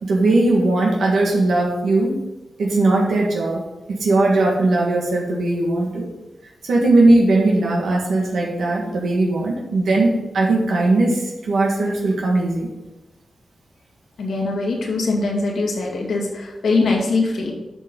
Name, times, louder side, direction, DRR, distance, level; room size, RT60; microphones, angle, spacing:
voice 1, 0.0-2.2 2.6-3.6 3.9-6.1 6.6-12.7, right 2 dB, 90° right, -2 dB, 1.8 m, -18 dB
voice 2, 14.2-17.5, left 3 dB, 85° left, 0 dB, 2.1 m, -22 dB
10.0 x 5.7 x 3.9 m, 1.0 s
cardioid pair, 75°, 0 cm